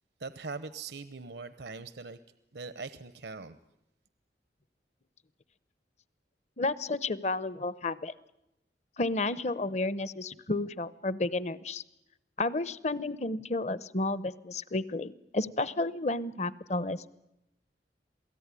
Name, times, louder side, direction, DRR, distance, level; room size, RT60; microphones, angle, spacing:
voice 1, 0.2-2.2 2.5-3.6, right 4 dB, 75° right, 13 dB, 0.9 m, -41 dB
voice 2, 6.6-8.1 9.0-11.8 12.4-17.1, left 2 dB, 40° left, 17 dB, 0.8 m, -32 dB
27.5 x 18.0 x 9.8 m, 0.89 s
head